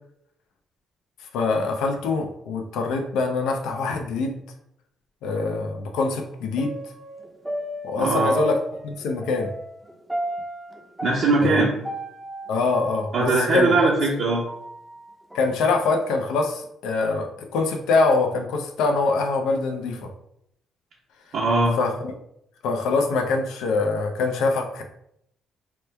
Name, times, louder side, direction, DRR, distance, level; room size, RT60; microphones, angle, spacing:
voice 1, 1.3-4.4 5.2-6.7 7.8-8.6 8.8-9.5 11.4-11.6 12.5-13.7 15.3-20.1 21.8-22.1 22.6-24.8, left 3 dB, 90° left, 4 dB, 0.4 m, -24 dB
sound 1, 6.6-13.8 14.3-15.6 16.0-16.1, right 1 dB, 10° right, 0.5 m, -34 dB
voice 2, 8.0-8.4 11.0-11.7 13.1-14.4 21.3-21.8, right 3 dB, 65° right, -5 dB, 0.6 m, -20 dB
3.0 x 2.2 x 3.2 m, 0.77 s
cardioid pair, 90°, 0 cm